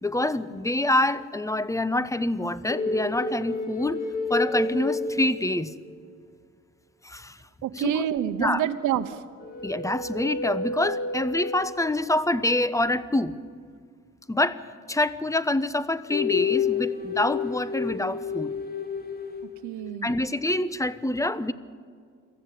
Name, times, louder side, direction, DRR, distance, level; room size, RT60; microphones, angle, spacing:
voice 1, 0.0-4.0 4.3-5.7 7.0-7.4 7.8-8.1 8.4-8.6 9.6-13.3 14.3-14.6 14.9-18.5 20.0-21.5, left 1 dB, 10° left, 15 dB, 0.9 m, -26 dB
sound 1, 2.7-5.9 9.4-12.0 16.1-19.9, left 4 dB, 30° left, 2.5 m, -30 dB
voice 2, 7.6-9.2 19.6-20.1, right 10 dB, 80° right, 9 dB, 1.0 m, -27 dB
23.5 x 14.5 x 8.2 m, 2.1 s
cardioid pair, 90°, 30 cm